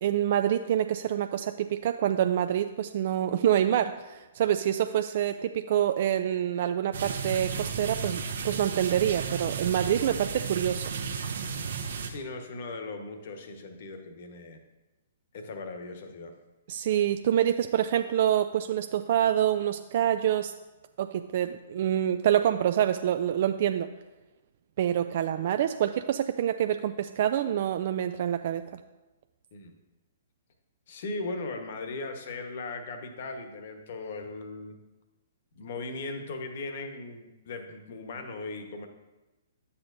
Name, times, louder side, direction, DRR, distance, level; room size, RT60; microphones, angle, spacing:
voice 1, 0.0-10.9 16.7-20.5 21.0-23.9 24.8-28.8, right 10 dB, 55° right, 8 dB, 0.3 m, -26 dB
sound 1, 6.9-12.1, right 5 dB, 70° right, 0.9 m, -33 dB
voice 2, 12.1-14.6 15.3-16.4 29.5-29.8 30.9-34.8 35.5-38.9, left 3 dB, 55° left, 5 dB, 1.2 m, -38 dB
9.6 x 7.0 x 2.6 m, 1.1 s
hypercardioid pair, 125°, 0 cm